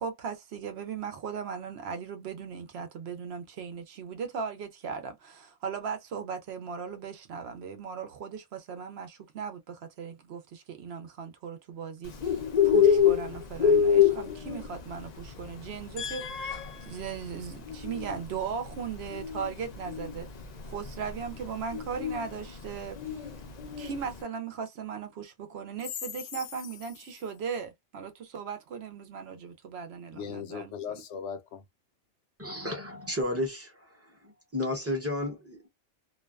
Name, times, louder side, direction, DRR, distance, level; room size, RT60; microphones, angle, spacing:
voice 1, 0.0-16.2 16.7-20.3 20.6-23.2 23.8-31.0, right 6 dB, 70° right, 0.8 m, -38 dB
Bird, 12.0-24.2, left 8 dB, 50° left, 0.5 m, -27 dB
voice 2, 16.0-17.2 26.3-26.4 30.1-31.6, left 7 dB, 75° left, 0.8 m, -39 dB
voice 3, 32.4-34.0 34.2-35.7, left 1 dB, 15° right, 0.7 m, -32 dB
2.5 x 2.2 x 2.3 m
omnidirectional pair, 1.2 m